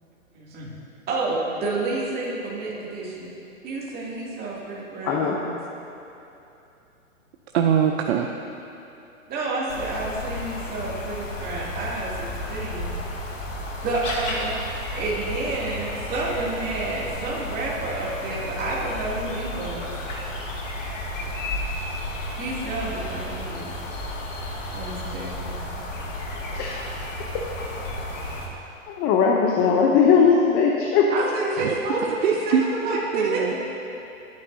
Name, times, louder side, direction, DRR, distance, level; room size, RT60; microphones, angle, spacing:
voice 1, 0.3-0.7 1.1-3.3 3.6-5.6 9.3-12.9 13.8-14.5 14.8-19.9 22.4-23.7 24.7-25.6 29.6-29.7 31.1-33.4, right 2 dB, 20° right, -5 dB, 2.5 m, -29 dB
voice 2, 5.0-5.4 26.5-26.7 28.9-31.1, left 6 dB, 25° left, 0 dB, 0.7 m, -19 dB
voice 3, 7.5-8.3 13.4-13.5 31.6-31.8 32.0-32.6 33.1-33.5, right 8 dB, 50° right, 3 dB, 0.7 m, -22 dB
sound 1, 9.7-28.5, left 1 dB, 65° left, 2.1 m, -32 dB
19.5 x 9.6 x 2.7 m, 2.9 s
hypercardioid pair, 125°, 41 cm